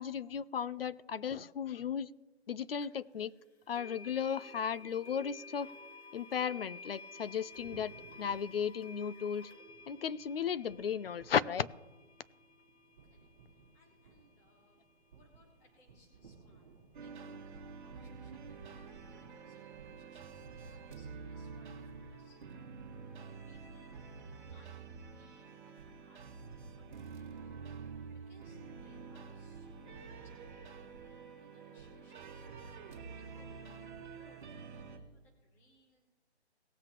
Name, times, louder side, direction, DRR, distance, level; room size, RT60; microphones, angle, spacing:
voice 1, 0.0-2.1 2.5-3.3 3.7-5.7 6.1-9.5 9.9-11.7, left 7 dB, 60° left, 17 dB, 0.5 m, -35 dB
sound 1, 2.8-2.9 3.7-14.7, left 2 dB, 75° left, 2.0 m, -53 dB
sound 2, 7.4-21.1, right 5 dB, 25° right, 2.8 m, -62 dB
voice 2, 13.0-14.8 15.1-22.4 23.5-27.8 28.1-36.0, left 1 dB, 5° left, 0 dB, 1.0 m, -69 dB
sound 3, 16.9-35.0, right 5 dB, 45° right, 1.7 m, -48 dB
18.5 x 7.7 x 3.0 m, 1.1 s
hypercardioid pair, 165°, 33 cm